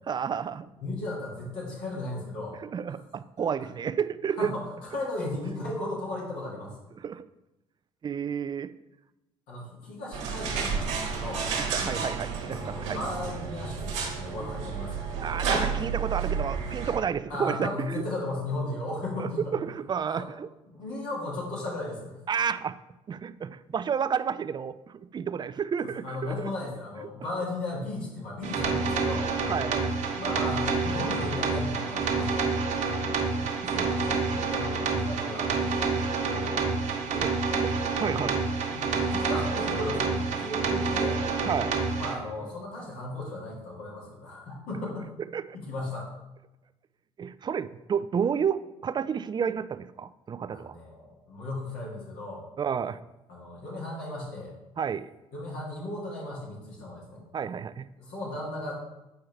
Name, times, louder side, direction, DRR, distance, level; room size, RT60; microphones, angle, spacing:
voice 1, 0.1-0.7 2.7-4.5 7.0-7.3 8.0-8.7 11.7-13.0 15.2-18.0 19.2-20.5 22.3-22.8 23.1-26.5 29.5-30.0 33.1-33.9 34.4-34.6 36.2-36.6 37.2-38.4 41.4-41.8 45.3-45.6 47.2-50.8 52.6-53.0 54.8-55.1 57.3-57.9, right 7 dB, 30° right, 13 dB, 0.4 m, -31 dB
voice 2, 0.8-2.6 2.9-3.0 4.4-6.8 9.5-11.5 12.5-15.2 17.3-19.5 20.1-20.3 20.7-22.2 26.0-29.3 30.1-32.5 33.7-35.8 37.1-37.2 38.7-41.2 42.0-45.1 45.6-46.1 50.5-52.4 53.3-54.5 55.3-57.2 58.0-58.7, left 2 dB, 70° left, -5 dB, 1.7 m, -36 dB
sound 1, 10.1-17.0, right 5 dB, 80° right, 1.2 m, -31 dB
sound 2, 28.4-42.1, right 4 dB, 55° right, 1.2 m, -28 dB
7.7 x 4.5 x 3.2 m, 0.96 s
hypercardioid pair, 55°, 15 cm